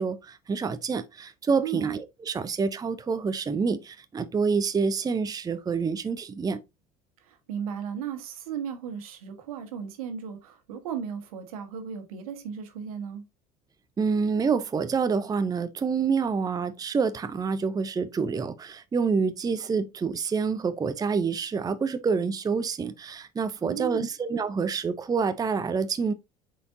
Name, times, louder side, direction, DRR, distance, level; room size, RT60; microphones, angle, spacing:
voice 1, 0.0-6.6 14.0-26.1, right 5 dB, 20° right, 0.6 m, -27 dB
voice 2, 7.2-13.2 23.6-24.1, right 8 dB, 75° right, 1.4 m, -35 dB
7.9 x 4.6 x 2.7 m
hypercardioid pair, 70°, 18 cm